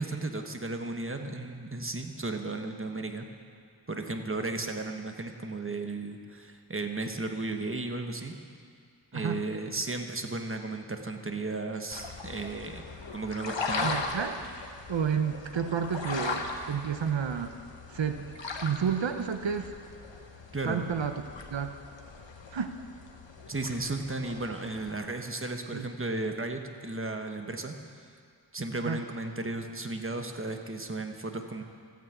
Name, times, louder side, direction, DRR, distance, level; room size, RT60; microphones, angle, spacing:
voice 1, 0.0-3.3 3.9-8.4 9.1-12.9 13.1-13.9 20.5-21.0 23.5-27.7 28.5-31.6, right 2 dB, 30° right, 5 dB, 1.2 m, -34 dB
sound 1, 11.9-24.9, left 3 dB, 90° left, 1.2 m, -39 dB
voice 2, 13.8-14.4 14.9-17.6 17.9-18.3 18.6-19.7 20.7-21.2 21.5-21.8 22.5-22.7 25.7-25.9 28.8-29.0, right 7 dB, 85° right, 8 dB, 0.7 m, -30 dB
14.0 x 9.3 x 8.0 m, 2.2 s
wide cardioid pair, 45°, 43 cm